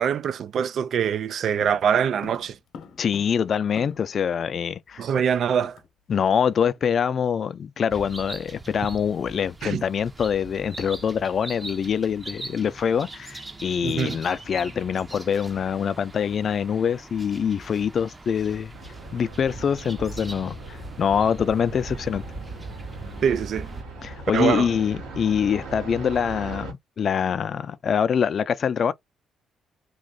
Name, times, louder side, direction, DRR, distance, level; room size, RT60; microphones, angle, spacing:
voice 1, 0.0-2.6 5.0-5.8 9.6-9.8 13.8-14.2 23.2-23.7 24.3-24.7, right 8 dB, 65° right, 0.3 m, -24 dB
sound 1, 1.6-4.3 4.5-4.6 4.9-5.9 6.2-6.4 6.8-7.0, left 5 dB, 70° left, 0.9 m, -46 dB
voice 2, 3.0-5.0 6.1-18.7 19.1-22.2 24.0-28.9, left 7 dB, 55° left, 0.5 m, -24 dB
sound 2, 7.9-23.8, right 2 dB, 20° right, 0.6 m, -41 dB
sound 3, 18.7-26.7, right 2 dB, 85° right, 1.5 m, -39 dB
3.0 x 2.5 x 3.8 m
cardioid pair, 90°, 0 cm